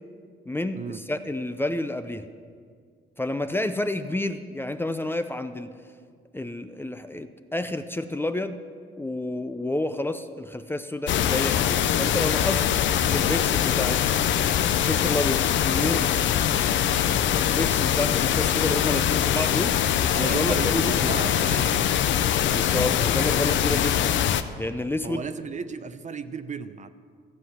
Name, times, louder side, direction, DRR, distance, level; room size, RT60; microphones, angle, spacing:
voice 1, 0.5-2.3 3.2-5.7 6.3-8.6 9.0-12.6 13.1-14.0 14.8-16.1 17.4-19.8 20.2-21.1 22.5-24.1 24.6-25.2, left 1 dB, 10° left, 9 dB, 0.5 m, -29 dB
sound 1, 11.1-24.4, left 10 dB, 70° left, 0.6 m, -23 dB
voice 2, 20.1-22.1 25.0-26.9, right 5 dB, 35° right, 11 dB, 0.6 m, -34 dB
15.0 x 7.8 x 6.3 m, 2.1 s
cardioid pair, 90°, 20 cm